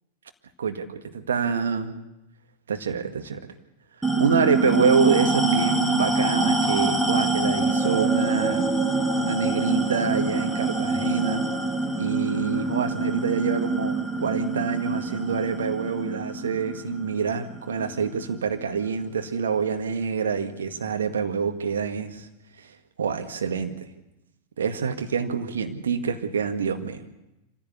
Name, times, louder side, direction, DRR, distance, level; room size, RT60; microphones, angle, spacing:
voice 1, 0.6-2.0 2.7-3.5 4.2-8.7 9.2-11.4 12.0-22.3 22.6-22.7 23.0-23.9 24.6-27.1, right 6 dB, 65° right, 6 dB, 1.9 m, -26 dB
sound 1, 4.0-18.8, right 2 dB, ahead, 2.1 m, -25 dB
25.5 x 15.5 x 8.4 m, 0.94 s
figure-of-eight pair, 90°, 0 cm